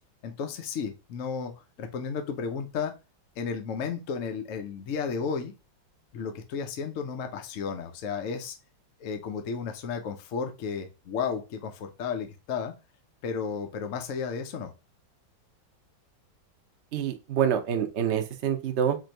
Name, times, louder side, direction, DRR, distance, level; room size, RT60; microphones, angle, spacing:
voice 1, 0.2-1.5 1.8-2.9 3.4-5.5 6.1-8.6 9.0-12.7 13.2-14.7, left 6 dB, 65° left, 5 dB, 0.7 m, -33 dB
voice 2, 16.9-19.0, right 8 dB, 70° right, 5 dB, 0.6 m, -26 dB
4.3 x 2.6 x 4.4 m, 0.28 s
omnidirectional pair, 2.1 m